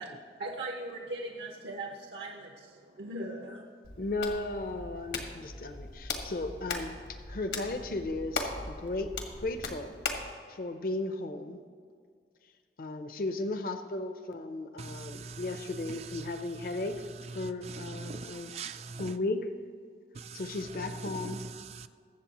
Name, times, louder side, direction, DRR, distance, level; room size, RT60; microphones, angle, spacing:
voice 1, 0.4-3.7, right 2 dB, 80° right, 1.0 m, -39 dB
Hands, 3.8-10.3, left 3 dB, 80° left, 1.4 m, -39 dB
voice 2, 4.0-7.0 7.3-9.1 9.4-9.9 10.2-11.6 12.8-16.9 17.3-18.5 19.0-19.4 20.3-21.4, left 2 dB, 55° left, 0.6 m, -35 dB
voice 3, 14.8-19.2 20.1-21.9, right 4 dB, 35° right, 0.3 m, -43 dB
21.5 x 7.6 x 3.0 m
head